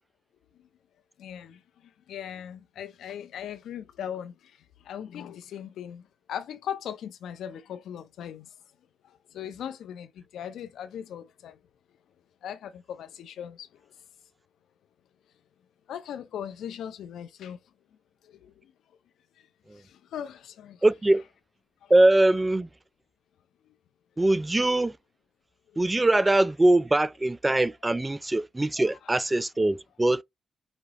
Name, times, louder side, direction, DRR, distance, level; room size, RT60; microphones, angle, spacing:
voice 1, 1.2-8.5 9.0-11.6 12.4-13.8 15.9-17.6 18.2-18.7 19.4-19.5 19.7-20.8 21.8-21.9 23.7-23.8 29.0-29.2, left 9 dB, 80° left, 0.6 m, -39 dB
voice 2, 20.8-21.2 21.9-22.7 24.2-24.9 25.8-30.2, right 2 dB, 15° right, 0.4 m, -22 dB
5.2 x 2.8 x 2.9 m
cardioid pair, 80°, 0 cm